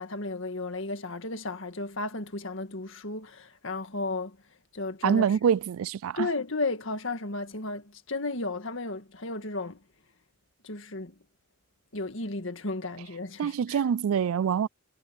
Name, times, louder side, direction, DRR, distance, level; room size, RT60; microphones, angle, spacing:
voice 1, 0.0-4.4 4.7-5.4 6.2-9.8 10.6-11.2 11.9-13.8, left 2 dB, 65° left, 1.9 m, -34 dB
voice 2, 5.0-6.3 13.4-14.7, right 7 dB, 80° right, 0.3 m, -25 dB
head